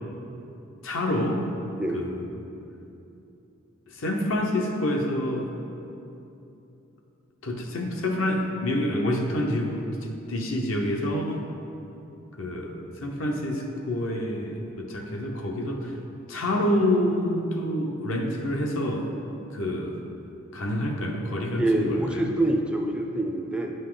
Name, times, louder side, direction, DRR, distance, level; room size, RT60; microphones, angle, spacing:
voice 1, 0.8-1.4 1.9-2.3 3.9-5.5 7.4-11.4 12.3-16.0 16.3-19.1 19.5-20.0 20.5-22.3, left 1 dB, 70° left, 2 dB, 0.8 m, -27 dB
voice 2, 21.6-23.7, right 1 dB, 5° right, 2 dB, 0.4 m, -25 dB
9.4 x 5.4 x 3.8 m, 2.9 s
head